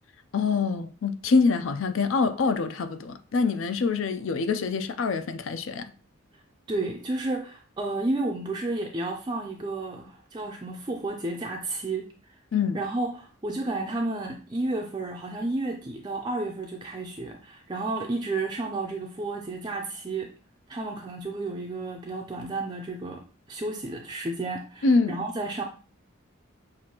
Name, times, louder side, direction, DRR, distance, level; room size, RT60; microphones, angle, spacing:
voice 1, 0.3-5.9 12.5-12.8 24.8-25.2, left 4 dB, 65° left, 0.4 m, -25 dB
voice 2, 6.7-12.4 12.7-20.3 20.7-23.2 23.5-25.6, right 2 dB, 20° right, 0.4 m, -32 dB
6.2 x 2.5 x 2.8 m
head